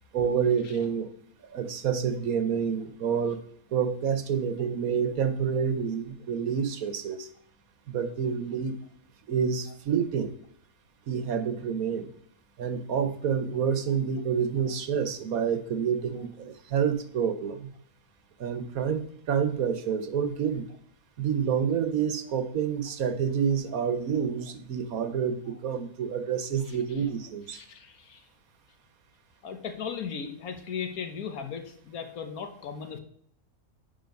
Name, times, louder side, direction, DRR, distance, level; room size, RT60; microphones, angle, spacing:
voice 1, 0.1-1.1 1.5-3.4 3.7-7.3 7.9-8.7 9.3-10.4 11.1-12.1 12.6-17.7 18.4-20.7 21.2-27.6, right 7 dB, 75° right, 10 dB, 1.4 m, -28 dB
voice 2, 27.5-28.3 29.4-33.0, left 6 dB, 85° left, 6 dB, 1.6 m, -37 dB
10.5 x 4.7 x 5.3 m, 0.63 s
omnidirectional pair, 1.5 m